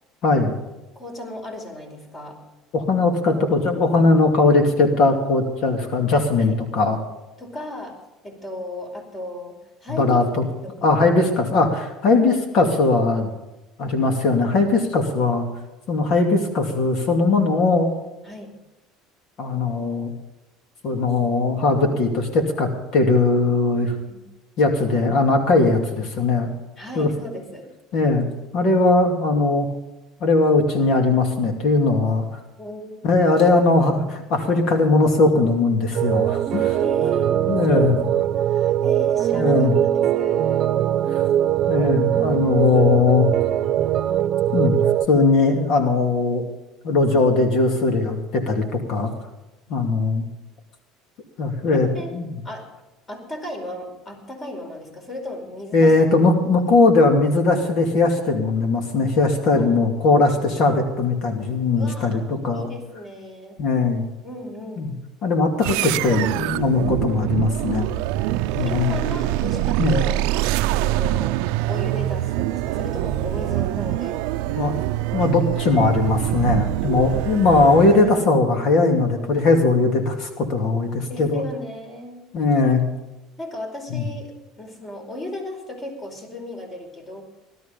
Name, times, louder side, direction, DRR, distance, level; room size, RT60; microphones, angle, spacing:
voice 1, 0.2-0.6 2.7-7.0 9.9-10.4 10.8-13.3 13.8-15.5 15.9-17.9 19.4-20.1 20.8-23.9 24.6-26.5 27.0-27.1 27.9-28.3 28.5-29.7 30.2-32.4 33.0-36.8 37.5-38.1 39.3-39.7 41.1-41.2 41.7-43.3 44.5-44.7 45.1-46.4 46.8-49.1 49.7-50.3 51.4-52.4 55.7-62.7 63.6-64.1 64.8-64.9 65.2-67.9 68.5-68.9 69.8-70.0 74.6-74.7 75.1-81.4 82.3-82.8 83.9-84.0, left 3 dB, 60° left, 4 dB, 2.6 m, -19 dB
voice 2, 0.9-2.4 6.4-6.6 7.4-8.0 8.2-10.3 10.6-10.9 12.1-12.6 18.2-18.5 24.1-24.2 26.8-27.7 32.6-33.2 36.8-39.7 39.9-40.7 42.6-43.0 49.7-49.8 51.7-52.2 52.4-52.7 53.1-55.9 56.5-56.6 59.6-60.2 61.8-62.3 62.5-63.6 64.2-65.0 68.3-70.5 70.8-74.2 77.3-77.5 81.1-82.2 83.4-87.2, left 1 dB, 25° left, 4 dB, 4.8 m, -35 dB
sound 1, 35.9-45.1, right 11 dB, 45° right, 0.9 m, -21 dB
sound 2, 65.6-78.3, right 15 dB, 80° right, 0.5 m, -24 dB
17.0 x 12.5 x 5.3 m, 0.99 s
cardioid pair, 125°, 0 cm